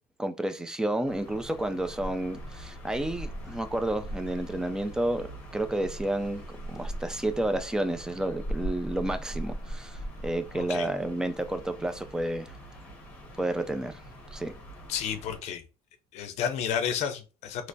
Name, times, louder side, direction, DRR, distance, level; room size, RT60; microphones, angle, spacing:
voice 1, 0.2-5.3 5.5-12.6 13.4-14.0 14.3-14.6, right 1 dB, 5° right, 0.3 m, -31 dB
sound 1, 1.0-15.4, right 1 dB, 10° left, 1.4 m, -40 dB
voice 2, 10.5-10.9 14.9-15.6 16.1-17.7, left 8 dB, 55° left, 0.6 m, -31 dB
3.2 x 3.0 x 2.6 m
cardioid pair, 140°, 13 cm